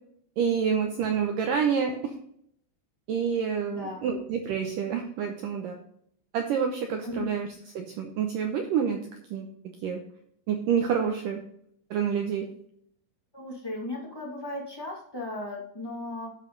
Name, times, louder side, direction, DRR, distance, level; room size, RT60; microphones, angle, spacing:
voice 1, 0.4-2.1 3.1-5.8 6.3-7.5 7.8-9.0 9.3-9.5 9.8-10.0 10.5-11.4 11.9-12.5, right 7 dB, 80° right, 4 dB, 2.0 m, -28 dB
voice 2, 3.7-4.0 7.0-7.2 13.3-16.3, left 2 dB, 20° left, -3 dB, 0.6 m, -36 dB
13.0 x 5.7 x 3.9 m, 0.68 s
omnidirectional pair, 5.0 m